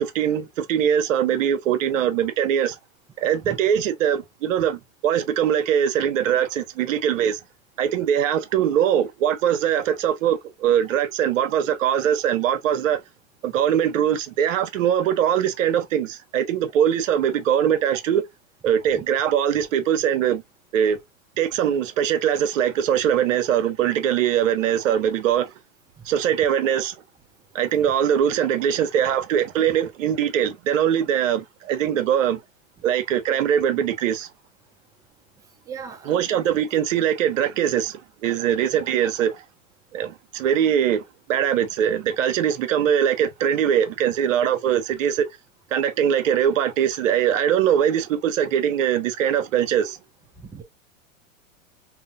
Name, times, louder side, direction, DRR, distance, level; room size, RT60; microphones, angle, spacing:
voice 1, 0.0-2.8 3.2-7.4 7.8-13.0 13.4-18.2 18.6-20.4 20.7-21.0 21.4-25.5 26.0-27.0 27.5-32.4 32.8-34.3 36.1-39.4 39.9-41.0 41.3-45.3 45.7-50.0, right 9 dB, 70° right, 0.8 m, -22 dB
voice 2, 35.7-36.4 50.4-50.6, right 6 dB, 10° right, 0.4 m, -38 dB
3.0 x 2.0 x 2.4 m
hypercardioid pair, 120°, 40 cm